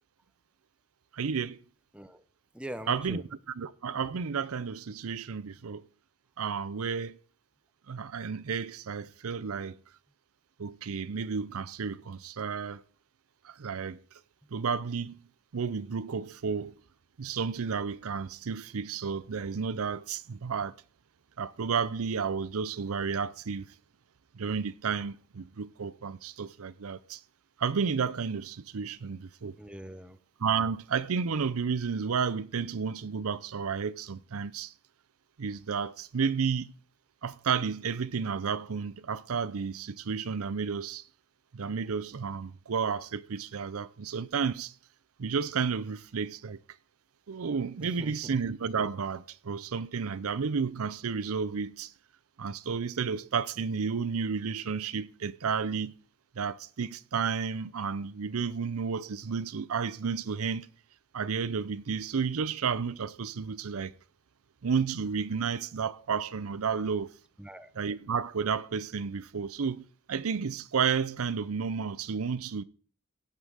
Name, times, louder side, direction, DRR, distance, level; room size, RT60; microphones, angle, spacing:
voice 1, 1.1-1.6 2.9-3.2 3.6-5.8 6.4-7.2 7.9-9.8 10.6-12.8 13.4-14.0 14.5-15.2 15.5-16.7 17.2-20.7 21.4-23.7 24.3-27.2 27.6-29.5 30.4-34.7 35.4-36.7 37.2-41.0 41.5-44.7 45.2-46.6 47.3-51.9 52.4-56.0 56.4-60.7 61.1-63.9 64.6-67.1 67.8-72.6, right 6 dB, 75° right, 0.6 m, -32 dB
voice 2, 1.9-2.2 2.5-3.2 29.6-30.2 47.8-48.3 67.4-67.7, right 1 dB, 5° right, 0.6 m, -42 dB
16.5 x 5.6 x 6.3 m
head